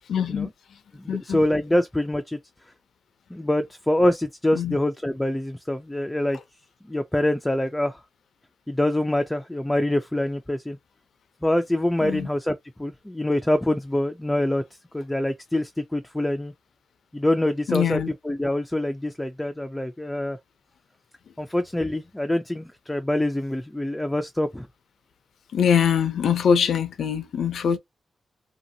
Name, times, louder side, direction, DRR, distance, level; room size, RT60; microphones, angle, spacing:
voice 1, 0.1-0.5 1.1-1.4 4.5-4.8 12.0-12.3 17.7-18.1 25.5-27.8, left 7 dB, 80° left, 0.5 m, -23 dB
voice 2, 0.9-2.4 3.3-6.4 6.9-8.0 8.7-10.8 11.4-14.6 14.9-16.5 17.1-18.0 18.2-20.4 21.4-24.7, left 1 dB, 5° left, 0.3 m, -25 dB
2.9 x 2.7 x 2.7 m
wide cardioid pair, 160°, 0 cm